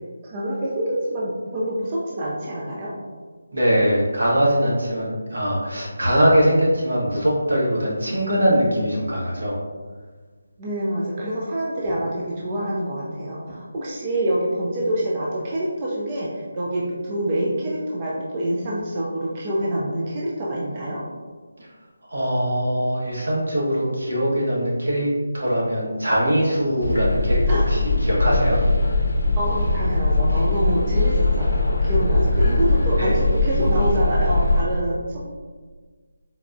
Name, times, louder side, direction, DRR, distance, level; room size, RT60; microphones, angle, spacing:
voice 1, 0.2-2.9 10.6-21.0 27.5-27.8 29.4-35.0, right 1 dB, 20° right, -5 dB, 0.3 m, -26 dB
voice 2, 3.5-9.6 22.1-25.1 25.3-28.6 33.0-33.2, equal, 80° right, -4 dB, 1.1 m, -21 dB
sound 1, 26.8-34.6, left 2 dB, 75° left, 0.5 m, -20 dB
4.0 x 2.2 x 2.5 m, 1.4 s
figure-of-eight pair, 175°, 0 cm